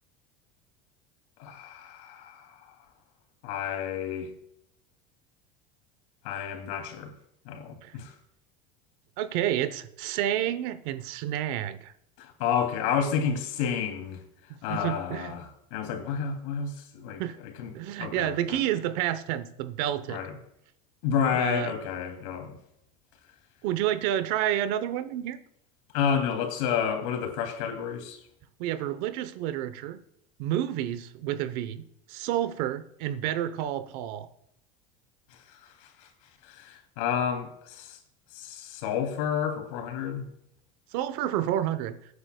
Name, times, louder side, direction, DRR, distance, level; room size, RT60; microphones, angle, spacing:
voice 1, 1.4-2.5 3.4-4.3 6.2-7.1 7.4-8.1 12.2-14.2 14.6-17.7 18.0-18.6 20.1-20.3 21.0-22.5 25.9-28.2 36.4-38.0 38.3-40.3, left 7 dB, 75° left, 2.8 m, -30 dB
voice 2, 9.2-11.9 14.7-15.4 17.2-17.4 17.7-20.2 21.3-21.8 23.6-25.4 28.6-30.0 30.4-34.3 40.9-42.0, right 12 dB, 60° right, 0.9 m, -29 dB
20.0 x 9.6 x 2.3 m
cardioid pair, 150°, 17 cm